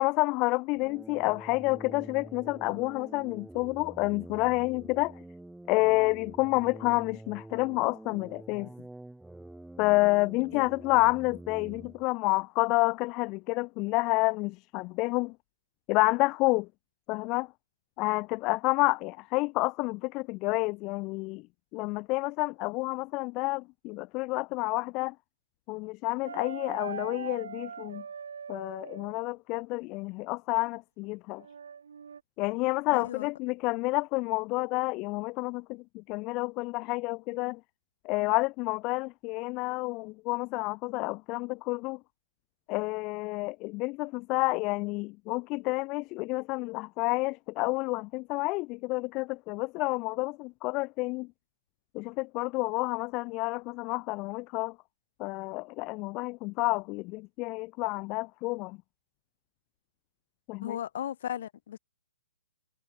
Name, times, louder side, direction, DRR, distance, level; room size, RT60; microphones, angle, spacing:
voice 1, 0.0-5.2 5.7-8.7 9.8-15.3 15.9-16.7 17.1-17.5 18.0-21.5 21.7-25.1 25.7-28.0 28.5-31.4 32.4-37.6 38.0-42.0 42.7-51.3 51.9-54.7 55.2-58.8 60.5-60.8, left 24 dB, 30° left, 1.5 m, -29 dB
sound 1, 0.8-12.0, right 1 dB, 5° right, 2.2 m, -47 dB
sound 2, 26.2-29.1 31.4-32.2, right 6 dB, 75° right, 1.7 m, -41 dB
voice 2, 32.9-33.3 60.6-61.8, left 10 dB, 55° left, 2.4 m, -36 dB
hypercardioid pair, 145°, 0 cm